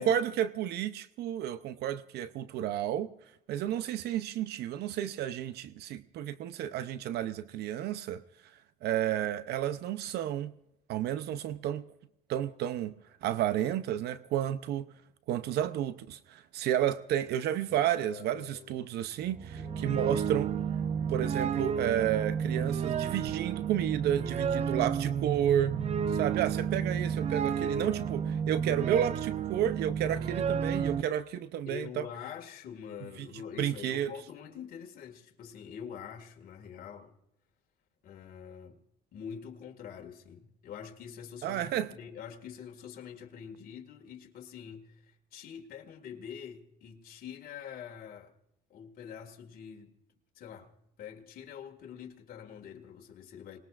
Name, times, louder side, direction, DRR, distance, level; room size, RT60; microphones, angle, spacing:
voice 1, 0.0-3.1 3.5-8.2 8.8-10.5 10.9-11.8 12.3-13.0 13.2-14.9 15.3-20.5 21.1-25.7 26.1-32.1 33.2-33.3 33.6-34.1 41.4-41.9, right 11 dB, 75° right, 0.7 m, -31 dB
voice 2, 17.7-18.8 19.5-20.0 31.7-37.1 38.0-38.8 39.1-48.3 48.7-49.9 50.4-53.6, left 8 dB, 60° left, 2.1 m, -45 dB
sound 1, 19.2-31.0, right 7 dB, 40° right, 0.7 m, -31 dB
26.5 x 20.0 x 2.5 m
cardioid pair, 110°, 17 cm